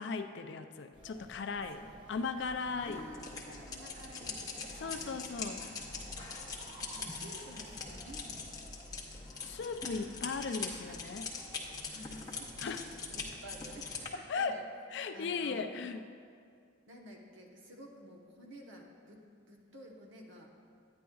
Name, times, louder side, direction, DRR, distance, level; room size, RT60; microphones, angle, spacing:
voice 1, 0.0-1.8 2.1-3.1 4.8-5.6 9.4-11.3 12.6-12.9 14.1-14.6 14.9-16.0, left 4 dB, 55° left, 8 dB, 0.4 m, -37 dB
sound 1, 0.9-9.8, equal, 25° right, 0.9 m, -54 dB
sound 2, 2.8-14.1, left 4 dB, 15° left, 0.7 m, -43 dB
voice 2, 2.8-6.2 6.9-8.7 9.9-10.2 10.6-11.0 11.8-12.8 13.1-14.6 15.1-15.7 16.9-19.2 19.5-20.5, equal, 65° right, 0 dB, 1.1 m, -52 dB
10.0 x 9.6 x 2.3 m, 2.2 s
head